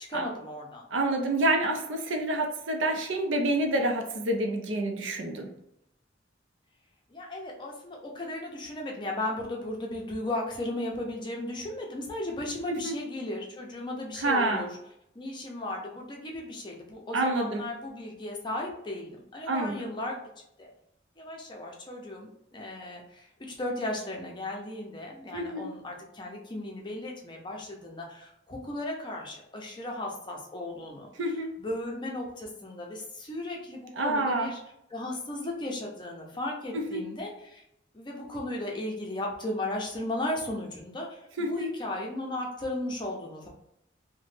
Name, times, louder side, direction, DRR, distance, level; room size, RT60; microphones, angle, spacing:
voice 1, 0.1-0.9 7.1-14.7 15.1-20.2 20.6-20.7 21.2-31.1 31.6-34.6 34.9-37.6 37.9-43.5, left 1 dB, 25° left, -1 dB, 0.6 m, -35 dB
voice 2, 0.9-5.5 12.7-12.9 14.2-14.6 17.1-17.6 19.5-19.8 25.3-25.7 31.2-31.5 34.0-34.5 36.7-37.0 41.4-41.7, right 1 dB, 75° right, 3 dB, 0.6 m, -28 dB
3.0 x 2.1 x 3.2 m, 0.78 s
head